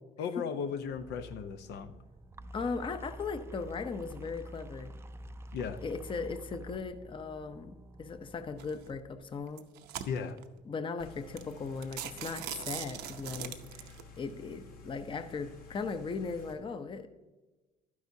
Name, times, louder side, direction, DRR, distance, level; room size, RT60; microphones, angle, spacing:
voice 1, 0.2-1.9 5.5-5.8 10.1-10.4, left 6 dB, 80° left, 9 dB, 0.7 m, -36 dB
sound 1, 0.8-9.4, equal, 15° right, 0.4 m, -48 dB
voice 2, 2.5-4.9 5.8-9.7 10.6-13.9 14.2-17.1, left 4 dB, 30° left, 9 dB, 0.7 m, -38 dB
sound 2, 8.6-8.9 9.5-10.5 11.0-11.1 11.4-11.5 11.8-14.0, right 11 dB, 85° right, 0.8 m, -41 dB
sound 3, 11.0-16.5, left 3 dB, 60° left, 1.7 m, -52 dB
11.5 x 9.7 x 2.7 m, 1.1 s
cardioid pair, 110°, 17 cm